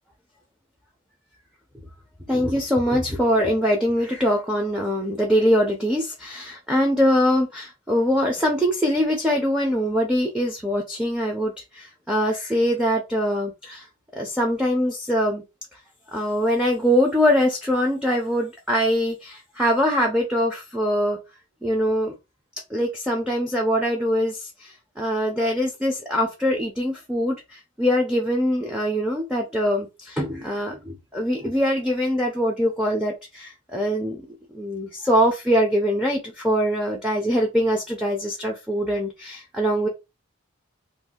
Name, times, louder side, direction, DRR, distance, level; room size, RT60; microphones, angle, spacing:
voice 1, 2.3-13.9 14.1-15.4 15.7-15.8 16.1-21.2 21.6-22.1 22.7-34.2 34.5-39.9, equal, 5° right, 0.4 m, -23 dB
2.6 x 2.3 x 3.5 m
head